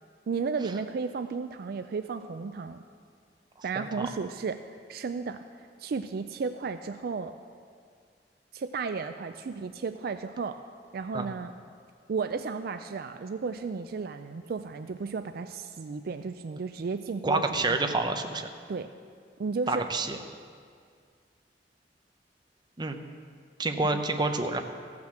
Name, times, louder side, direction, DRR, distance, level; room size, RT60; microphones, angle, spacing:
voice 1, 0.3-2.8 3.6-4.6 4.9-5.4 5.8-7.3 8.5-10.6 10.9-11.5 12.1-18.0 18.7-18.9 19.4-19.9 23.9-24.0, right 5 dB, 55° right, 9 dB, 0.4 m, -33 dB
voice 2, 3.8-4.1 11.1-11.3 17.2-18.5 19.7-20.2 22.8-23.0 23.6-24.6, right 2 dB, 25° right, 5 dB, 0.7 m, -28 dB
15.0 x 6.0 x 7.6 m, 2.1 s
head